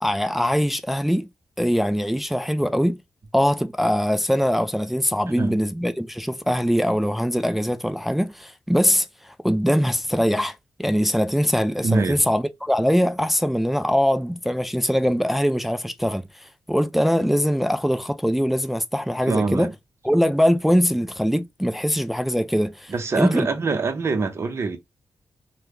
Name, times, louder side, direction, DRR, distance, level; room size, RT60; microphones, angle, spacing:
voice 1, 0.0-1.3 1.6-3.0 3.3-10.5 10.8-19.7 20.0-23.5, equal, 5° right, 0.3 m, -22 dB
voice 2, 11.8-12.2 19.3-19.7 22.9-24.8, right 4 dB, 45° right, 0.7 m, -24 dB
3.0 x 2.2 x 3.4 m
cardioid pair, 95°, 6 cm